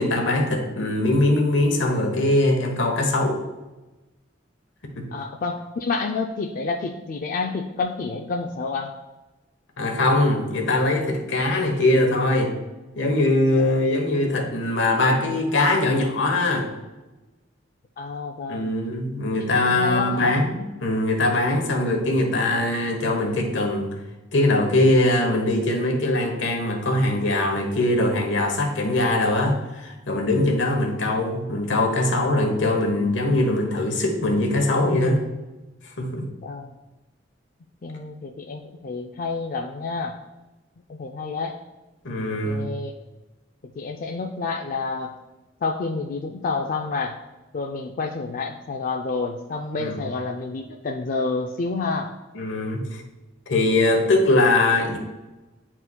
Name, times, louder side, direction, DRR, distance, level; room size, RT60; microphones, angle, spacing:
voice 1, 0.0-3.4 5.0-5.1 9.8-12.5 13.0-16.7 18.5-24.0 24.3-35.2 36.0-36.3 42.0-42.7 49.8-50.0 52.3-53.0 53.5-55.0, left 2 dB, 80° left, 3 dB, 1.1 m, -21 dB
voice 2, 5.1-8.9 13.6-13.7 18.0-18.7 19.7-20.3 36.4-36.7 37.8-40.2 40.9-41.5 42.4-42.9 43.8-45.1 45.6-47.2 47.5-52.1, left 4 dB, 50° left, 2 dB, 0.4 m, -29 dB
9.7 x 4.5 x 2.2 m, 1.1 s
head